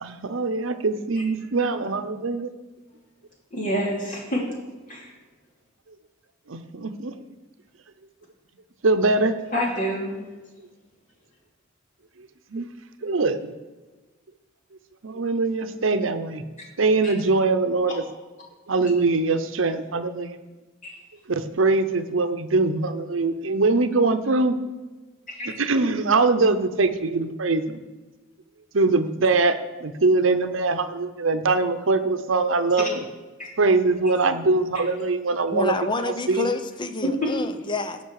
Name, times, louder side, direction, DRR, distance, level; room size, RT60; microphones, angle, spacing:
voice 1, 0.0-2.5 6.5-7.1 8.8-9.4 12.5-12.7 13.0-13.5 15.0-16.4 16.8-18.0 18.7-20.4 21.3-24.5 25.4-27.8 28.7-33.1 33.6-36.5, right 3 dB, 75° right, 9 dB, 0.8 m, -22 dB
voice 2, 3.5-4.5 4.9-5.1 9.5-10.1 17.0-17.1 20.8-20.9 25.3-25.5 33.4-33.5 37.2-37.3, equal, 40° left, -3 dB, 3.0 m, -27 dB
voice 3, 35.5-38.0, left 3 dB, 25° left, 9 dB, 0.6 m, -28 dB
17.0 x 5.9 x 4.8 m, 1.2 s
head